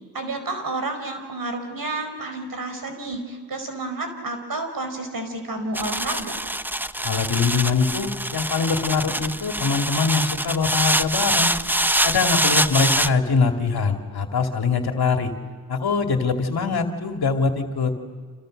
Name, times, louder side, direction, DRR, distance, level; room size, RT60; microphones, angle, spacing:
voice 1, 0.1-6.3, right 2 dB, 60° right, 7 dB, 5.4 m, -30 dB
sound 1, 5.7-13.1, right 1 dB, 5° right, 0.7 m, -24 dB
voice 2, 7.0-11.5 12.0-15.3 15.7-17.9, left 5 dB, 70° left, 4 dB, 2.6 m, -23 dB
30.0 x 27.5 x 6.6 m, 1.5 s
cardioid pair, 55°, 39 cm